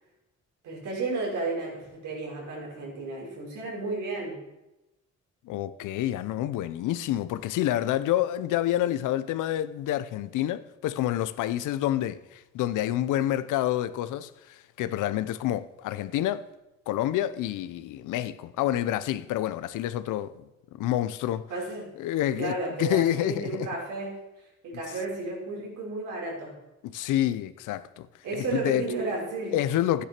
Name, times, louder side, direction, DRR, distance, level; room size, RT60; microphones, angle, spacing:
voice 1, 0.6-4.5 21.5-21.9 22.4-26.6 28.2-29.6, right 3 dB, 85° right, 5.6 m, -33 dB
voice 2, 5.5-16.4 16.9-20.5 20.7-21.5 22.0-23.7 26.8-28.1 28.4-28.8 29.5-30.0, left 13 dB, 90° left, 0.7 m, -28 dB
12.5 x 9.7 x 5.9 m
cardioid pair, 90°, 30 cm